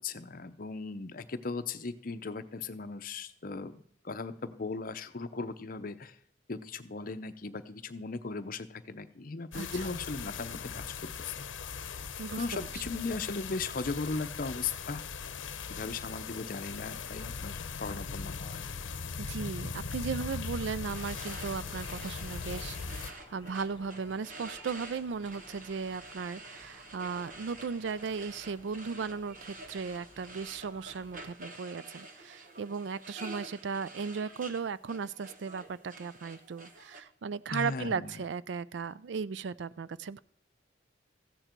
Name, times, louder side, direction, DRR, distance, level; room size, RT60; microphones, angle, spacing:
voice 1, 0.0-6.2 6.5-10.8 11.2-11.5 12.4-15.1 15.7-18.6 37.5-38.2, left 4 dB, 45° left, 10 dB, 0.7 m, -37 dB
sound 1, 9.5-23.1, left 5 dB, 85° left, 0.8 m, -39 dB
voice 2, 9.5-9.9 12.2-12.7 19.2-40.2, right 5 dB, 65° right, 18 dB, 0.4 m, -36 dB
sound 2, 20.7-31.3, left 2 dB, 25° left, 1.6 m, -57 dB
sound 3, 20.9-37.0, right 2 dB, 45° right, 1.2 m, -49 dB
14.5 x 9.1 x 4.5 m, 0.67 s
head